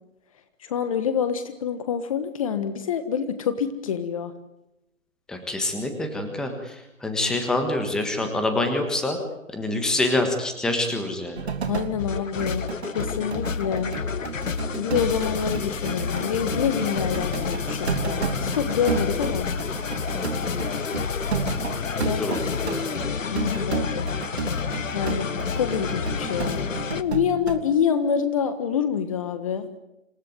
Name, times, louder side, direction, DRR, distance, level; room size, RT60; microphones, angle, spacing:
voice 1, 0.6-4.3 11.7-13.9 14.7-19.5 22.0-22.2 23.0-24.1 24.9-29.7, left 7 dB, 25° left, 10 dB, 1.4 m, -27 dB
voice 2, 5.3-9.2 9.5-11.5 20.1-20.8 22.0-23.0, left 2 dB, ahead, 6 dB, 1.5 m, -27 dB
sound 1, 11.4-12.0 12.4-27.6, right 5 dB, 50° right, 2.8 m, -32 dB
sound 2, 12.0-27.0, left 5 dB, 70° left, 1.4 m, -29 dB
27.0 x 17.5 x 9.4 m, 0.90 s
figure-of-eight pair, 150°, 40 cm